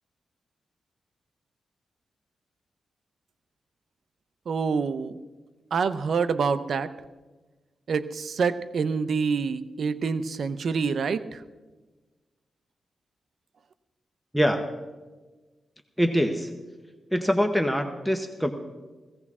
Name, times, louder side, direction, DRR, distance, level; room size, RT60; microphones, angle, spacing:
voice 1, 4.5-5.1 5.7-6.9 7.9-11.4, right 5 dB, 65° right, 12 dB, 0.6 m, -26 dB
voice 2, 16.0-16.5 17.1-18.5, equal, ahead, 5 dB, 0.8 m, -24 dB
17.0 x 16.0 x 3.6 m, 1.3 s
wide cardioid pair, 120°, 0 cm